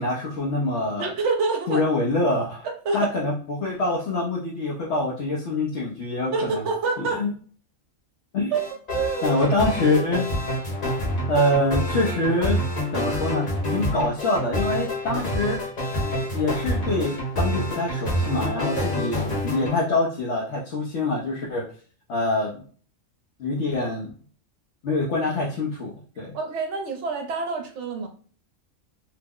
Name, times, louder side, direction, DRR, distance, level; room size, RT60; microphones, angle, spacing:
voice 1, 0.0-1.1 1.7-2.7 2.9-6.6 7.0-7.3 8.3-8.5 9.2-10.3 11.3-12.6 12.9-15.6 16.3-21.6 22.1-22.6 23.4-24.1 24.8-26.4, left 2 dB, 65° left, -5 dB, 0.9 m, -25 dB
voice 2, 1.0-1.8 2.8-3.1 6.3-7.3 8.5-9.4 18.6-19.0 26.3-28.1, right 4 dB, 70° right, 4 dB, 0.9 m, -27 dB
sound 1, 8.5-19.8, equal, 35° left, 0.9 m, -27 dB
2.9 x 2.1 x 3.6 m, 0.44 s
omnidirectional pair, 1.3 m